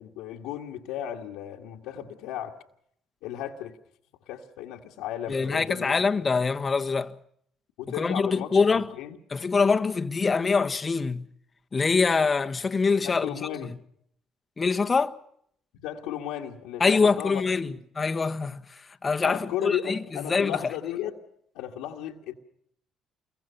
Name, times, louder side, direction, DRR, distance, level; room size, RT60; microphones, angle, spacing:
voice 1, 0.0-2.6 3.2-3.8 4.3-6.0 7.8-8.6 8.9-9.2 13.0-13.8 15.7-17.8 19.2-21.2 21.5-22.3, left 11 dB, 80° left, 1.9 m, -34 dB
voice 2, 5.3-7.2 8.0-8.9 9.3-11.3 11.7-13.4 14.6-15.2 16.8-20.6, left 4 dB, 35° left, 1.4 m, -24 dB
29.0 x 23.0 x 5.7 m
supercardioid pair, 65°, 0 cm